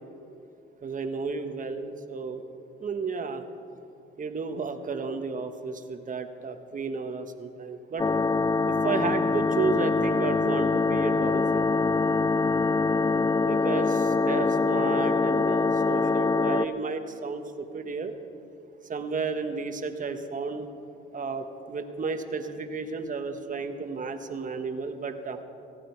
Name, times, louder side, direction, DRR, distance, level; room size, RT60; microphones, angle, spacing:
voice 1, 0.8-2.4 2.8-3.4 4.2-8.0 8.7-11.7 13.4-18.1 18.9-20.7 21.1-25.4, right 4 dB, 40° right, 7 dB, 1.3 m, -32 dB
sound 1, 8.0-16.6, left 4 dB, 20° left, 0.4 m, -24 dB
18.0 x 15.0 x 4.6 m, 2.6 s
cardioid pair, 90°, 20 cm